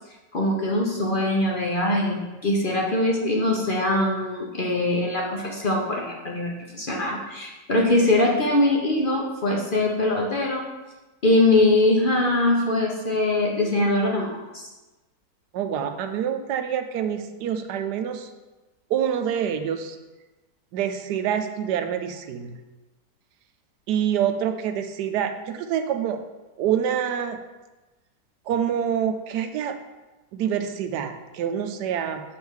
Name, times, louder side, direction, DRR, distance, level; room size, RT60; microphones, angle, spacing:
voice 1, 0.3-10.6 11.2-14.6, left 2 dB, 45° left, -1 dB, 0.7 m, -22 dB
voice 2, 15.5-18.3 18.9-20.0 20.7-22.6 23.9-26.2 26.6-27.4 28.5-29.8 30.3-32.2, right 9 dB, 75° right, 7 dB, 1.1 m, -26 dB
7.1 x 3.5 x 6.3 m, 1.1 s
omnidirectional pair, 1.9 m